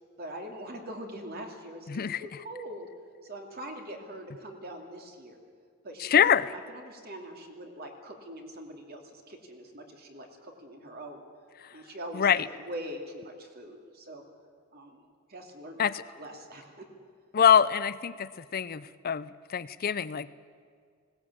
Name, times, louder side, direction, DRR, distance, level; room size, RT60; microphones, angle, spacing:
voice 1, 0.2-2.9 3.2-5.4 5.8-11.2 11.7-14.2 14.7-15.0 15.3-16.9, right 1 dB, 45° right, 3 dB, 2.7 m, -43 dB
voice 2, 1.9-2.2 6.0-6.5 11.6-11.7 12.1-12.5 15.8-16.0 17.3-20.3, left 8 dB, 45° left, 16 dB, 0.5 m, -25 dB
20.0 x 18.0 x 8.6 m, 2.1 s
head